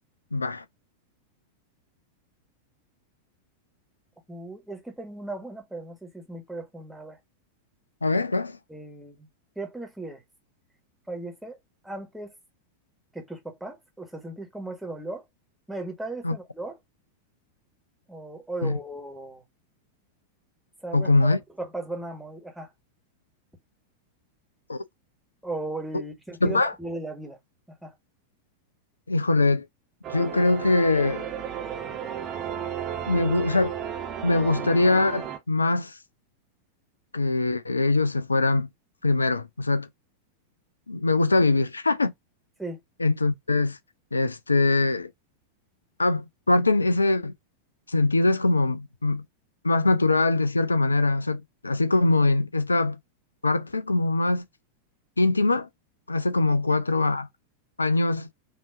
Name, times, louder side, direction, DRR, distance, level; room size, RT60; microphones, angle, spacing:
voice 1, 0.3-0.6 8.0-8.6 16.2-16.3 18.6-18.8 20.9-21.4 24.7-24.8 26.4-26.7 29.1-29.7 30.1-31.3 33.1-33.7 34.2-36.0 37.1-38.7 39.0-39.9 40.9-42.1 43.0-43.8 44.1-45.1 46.0-47.3 47.9-49.2 49.6-53.0 53.4-54.4 55.2-55.7 56.1-57.3 57.8-58.3, left 2 dB, 80° left, 0.4 m, -22 dB
voice 2, 4.3-7.2 8.7-9.3 9.5-10.2 11.1-11.6 11.8-12.3 13.1-15.2 15.7-16.8 18.1-19.4 20.8-22.7 25.4-27.4 27.8-27.9 42.6-42.8, right 2 dB, 5° right, 1.4 m, -37 dB
sound 1, 30.0-35.4, right 9 dB, 35° right, 1.2 m, -34 dB
5.4 x 2.9 x 2.5 m
figure-of-eight pair, 90°, 0 cm